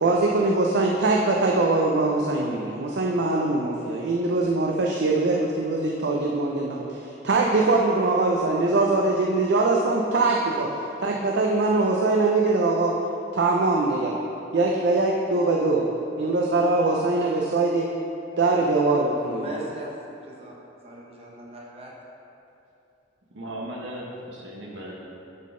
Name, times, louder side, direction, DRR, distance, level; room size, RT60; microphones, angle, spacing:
voice 1, 0.0-10.7 11.0-13.0 13.3-14.2 14.5-15.9 16.2-17.9 18.4-19.5, right 3 dB, 60° right, -1 dB, 0.5 m, -22 dB
voice 2, 19.4-21.9, right 1 dB, 30° right, -3 dB, 0.9 m, -39 dB
voice 3, 23.3-24.9, right 1 dB, 85° right, -3 dB, 1.3 m, -36 dB
10.0 x 3.8 x 3.7 m, 2.8 s
head